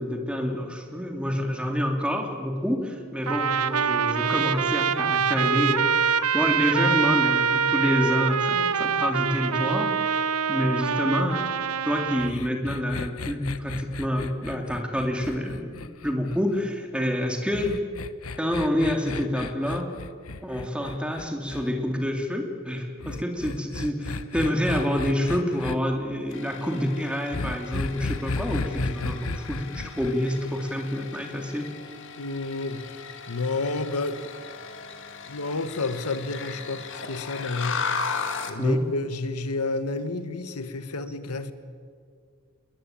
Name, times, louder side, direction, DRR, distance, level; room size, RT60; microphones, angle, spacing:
voice 1, 0.0-10.2 10.5-11.5 11.8-17.8 18.4-19.9 20.4-31.7 38.6-38.8, equal, 5° right, 3 dB, 2.8 m, -27 dB
Trumpet, 3.3-12.3, right 7 dB, 80° right, 0.9 m, -25 dB
sound 1, 12.2-16.6 17.5-21.7 23.0-25.8 27.3-30.1, left 3 dB, 70° left, 1.0 m, -34 dB
sound 2, 26.3-38.6, left 5 dB, 55° left, 2.1 m, -37 dB
voice 2, 32.2-33.0 33.3-34.3 35.3-37.8 38.5-41.5, left 3 dB, 85° left, 11 dB, 1.5 m, -30 dB
27.5 x 21.5 x 8.9 m, 2.1 s
head